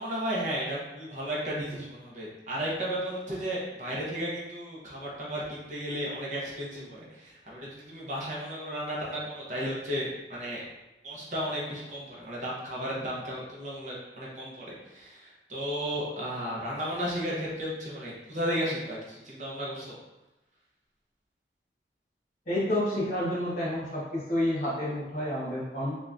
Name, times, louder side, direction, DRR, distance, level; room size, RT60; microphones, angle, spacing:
voice 1, 0.0-10.6 11.0-20.0, equal, 45° right, -5 dB, 0.9 m, -34 dB
voice 2, 22.5-26.0, left 1 dB, 40° left, -7 dB, 1.5 m, -29 dB
3.7 x 3.4 x 2.6 m, 1.0 s
head